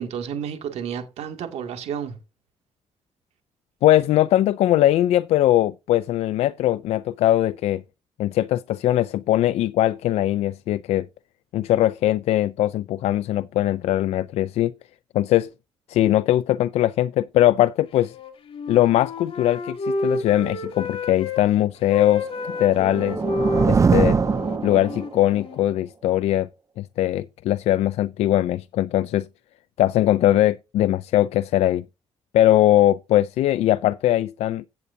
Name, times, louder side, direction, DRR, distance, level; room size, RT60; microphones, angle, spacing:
voice 1, 0.0-2.2, right 8 dB, 85° right, 2.4 m, -31 dB
voice 2, 3.8-7.8 8.2-11.1 11.5-14.7 15.1-15.5 15.9-18.1 18.7-23.2 23.6-24.2 24.6-26.5 26.8-29.3 29.8-31.8 32.3-34.7, left 13 dB, 90° left, 0.4 m, -20 dB
Wind instrument woodwind instrument, 18.1-21.4 21.8-25.7, left 2 dB, 60° left, 2.5 m, -30 dB
sound 1, 22.4-25.3, right 5 dB, 30° right, 0.6 m, -22 dB
16.0 x 8.2 x 2.7 m
cardioid pair, 95°, 11 cm